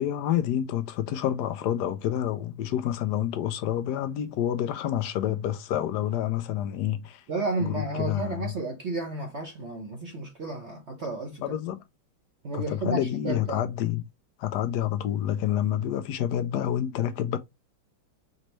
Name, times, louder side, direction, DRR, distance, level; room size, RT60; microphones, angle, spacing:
voice 1, 0.0-7.2 7.6-8.5 11.4-11.8 12.5-14.1 14.4-17.4, left 11 dB, 75° left, 1.0 m, -28 dB
voice 2, 7.3-11.6 12.4-13.7, right 2 dB, 50° right, 0.9 m, -32 dB
5.2 x 3.1 x 3.0 m
omnidirectional pair, 2.1 m